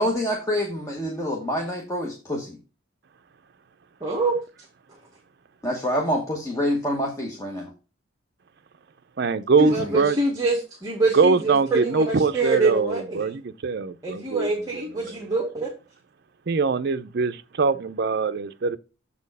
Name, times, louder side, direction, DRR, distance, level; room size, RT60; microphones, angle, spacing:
voice 1, 0.0-2.6 5.6-7.7 9.6-9.7, equal, 15° left, 1.0 m, -26 dB
voice 2, 4.0-4.4 9.7-13.3 14.0-15.7, right 3 dB, 15° right, 1.2 m, -25 dB
voice 3, 9.2-10.2 11.1-14.5 15.0-15.3 16.5-18.8, right 4 dB, 50° right, 0.5 m, -23 dB
7.2 x 4.3 x 5.3 m
head